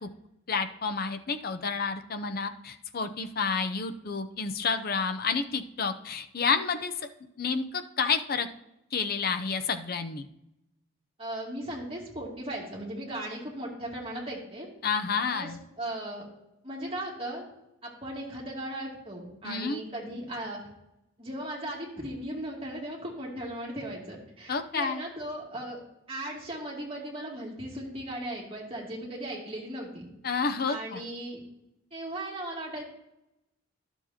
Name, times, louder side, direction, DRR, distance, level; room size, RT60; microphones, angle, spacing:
voice 1, 0.5-6.9 7.4-8.5 8.9-10.3 14.8-15.6 19.4-19.8 24.5-25.0 30.2-31.0, left 5 dB, 50° left, 8 dB, 0.7 m, -30 dB
voice 2, 11.2-14.7 15.3-15.5 15.8-16.3 16.6-17.5 17.8-20.6 21.2-25.8 26.1-30.1 30.7-31.4 31.9-32.8, right 1 dB, 30° right, -4 dB, 2.5 m, -37 dB
11.5 x 7.1 x 2.9 m, 0.86 s
head